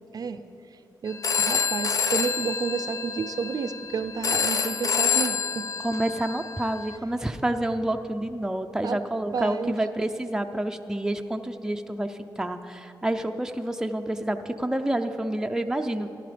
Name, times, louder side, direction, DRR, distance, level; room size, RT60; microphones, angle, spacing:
voice 1, 1.0-5.7 8.8-9.0 9.3-9.8, right 5 dB, 60° right, 10 dB, 0.5 m, -31 dB
Telephone, 1.1-7.0, left 6 dB, 50° left, 0.7 m, -27 dB
voice 2, 5.8-16.1, right 1 dB, 10° right, 6 dB, 0.6 m, -28 dB
14.5 x 11.5 x 5.1 m, 2.9 s
cardioid pair, 95°, 7 cm